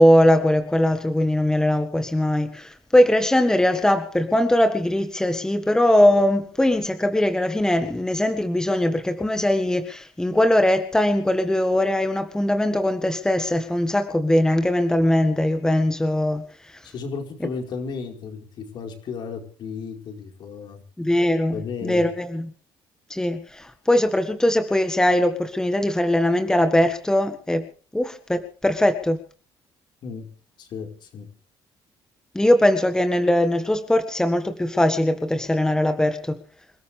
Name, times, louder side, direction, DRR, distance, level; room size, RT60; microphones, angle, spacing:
voice 1, 0.0-16.8 21.0-22.5 23.1-27.7 27.9-29.2 32.3-36.4, left 1 dB, 5° left, 7 dB, 1.7 m, -20 dB
voice 2, 16.8-20.8 21.5-22.1 30.0-30.3 30.6-31.3, left 5 dB, 65° left, 3 dB, 4.6 m, -34 dB
27.5 x 13.5 x 3.5 m, 0.40 s
cardioid pair, 105°, 9 cm